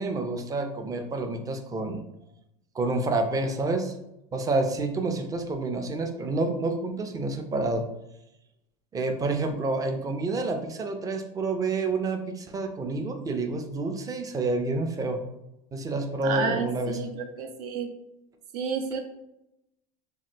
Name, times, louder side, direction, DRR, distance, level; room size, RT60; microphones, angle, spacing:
voice 1, 0.0-2.0 2.7-3.9 4.3-7.8 8.9-15.2 15.7-17.0, right 3 dB, 20° right, 5 dB, 0.4 m, -28 dB
voice 2, 16.2-17.9 18.5-19.0, right 5 dB, 80° right, 4 dB, 0.6 m, -30 dB
2.8 x 2.4 x 3.3 m, 0.86 s
supercardioid pair, 120°, 20 cm